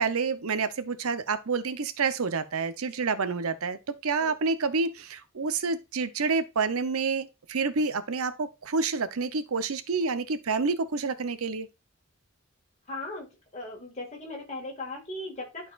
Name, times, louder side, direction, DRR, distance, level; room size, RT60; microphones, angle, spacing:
voice 1, 0.0-11.7, right 4 dB, 90° right, 0.7 m, -28 dB
voice 2, 12.9-13.3 13.5-15.7, left 2 dB, 30° left, 2.0 m, -38 dB
11.5 x 4.1 x 2.4 m
head